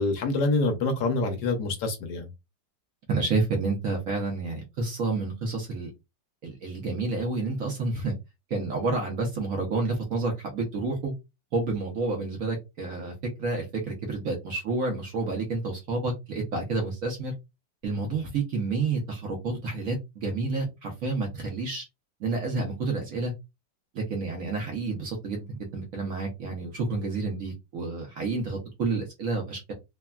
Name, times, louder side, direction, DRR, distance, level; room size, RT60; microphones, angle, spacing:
voice 1, 0.0-2.3, left 3 dB, 70° left, 1.1 m, -26 dB
voice 2, 3.1-5.9 6.4-8.1 8.5-11.1 11.5-17.3 17.8-21.8 22.2-23.3 23.9-29.7, right 3 dB, 60° right, 0.9 m, -29 dB
3.4 x 2.2 x 2.2 m
omnidirectional pair, 2.0 m